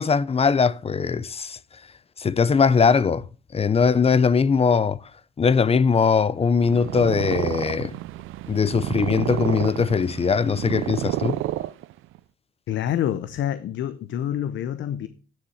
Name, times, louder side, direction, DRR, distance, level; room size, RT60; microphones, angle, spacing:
voice 1, 0.0-1.6 2.2-3.2 3.5-5.0 5.4-8.0 8.5-11.4, left 5 dB, 30° left, 0.6 m, -20 dB
Purr, 6.5-12.2, right 15 dB, 85° right, 0.5 m, -30 dB
voice 2, 12.7-15.1, left 10 dB, 70° left, 0.8 m, -27 dB
10.0 x 6.8 x 7.1 m
cardioid pair, 90°, 20 cm